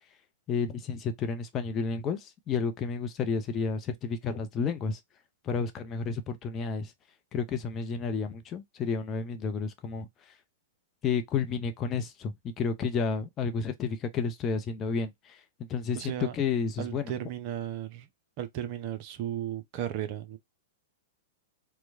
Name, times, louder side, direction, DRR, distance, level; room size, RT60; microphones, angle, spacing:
voice 1, 0.5-5.0 5.4-6.9 7.3-10.1 11.0-15.4 15.7-17.1, left 5 dB, 25° left, 0.6 m, -31 dB
voice 2, 15.9-16.3 16.8-18.1 18.4-20.4, right 11 dB, 40° right, 0.5 m, -35 dB
4.4 x 2.2 x 2.5 m
figure-of-eight pair, 105°, 0 cm